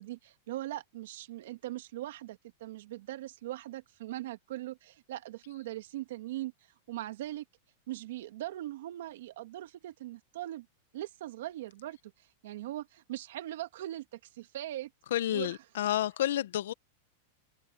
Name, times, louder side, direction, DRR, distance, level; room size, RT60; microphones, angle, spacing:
voice 1, 0.0-6.5 6.9-7.4 7.9-10.7 10.9-12.0 12.4-14.9 15.3-15.6, right 14 dB, 65° right, 2.0 m, -40 dB
voice 2, 15.1-16.7, left 12 dB, 75° left, 0.9 m, -30 dB
open air
supercardioid pair, 165°, 0 cm